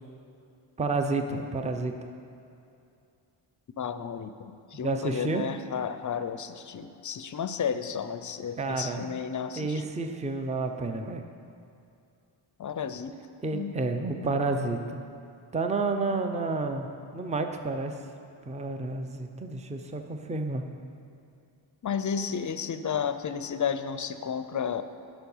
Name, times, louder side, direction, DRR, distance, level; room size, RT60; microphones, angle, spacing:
voice 1, 0.8-1.9 4.8-5.4 8.6-9.1 9.6-11.2 13.4-15.0 15.5-16.9 17.1-17.9 18.4-20.6, right 3 dB, 15° right, 6 dB, 0.5 m, -30 dB
voice 2, 3.8-9.9 12.6-13.1 13.5-13.8 14.5-14.6 21.8-24.8, left 7 dB, 40° left, 10 dB, 0.5 m, -32 dB
11.5 x 6.1 x 5.5 m, 2.6 s
wide cardioid pair, 120°, 49 cm